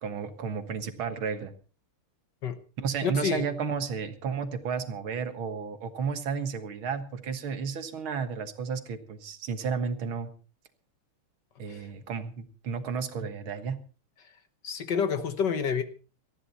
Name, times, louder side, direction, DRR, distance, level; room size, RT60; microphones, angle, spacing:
voice 1, 0.0-1.5 2.8-10.3 11.6-13.8, right 6 dB, 70° right, 9 dB, 2.3 m, -32 dB
voice 2, 3.0-3.4 11.7-11.8 14.6-15.8, left 6 dB, 60° left, 10 dB, 1.7 m, -28 dB
19.0 x 14.0 x 4.1 m, 0.35 s
omnidirectional pair, 2.4 m